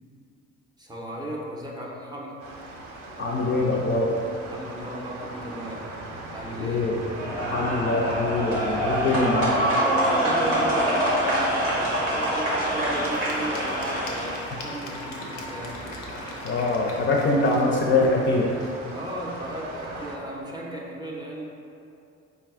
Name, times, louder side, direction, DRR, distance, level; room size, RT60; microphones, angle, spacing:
voice 1, 0.8-2.4 4.5-5.9 6.3-6.8 9.9-15.8 18.9-21.4, right 1 dB, 10° right, -4 dB, 0.6 m, -36 dB
sound 1, 2.4-20.2, right 2 dB, 55° right, 0.6 m, -40 dB
voice 2, 3.2-4.1 6.6-7.0 7.5-9.6 16.4-18.5, left 2 dB, 35° left, -1 dB, 0.5 m, -23 dB
sound 2, 7.1-14.5, right 1 dB, 85° right, 1.0 m, -25 dB
Applause / Crowd, 11.5-20.5, left 2 dB, 85° left, 0.5 m, -41 dB
4.1 x 2.3 x 3.6 m, 2.6 s
figure-of-eight pair, 50°, 36 cm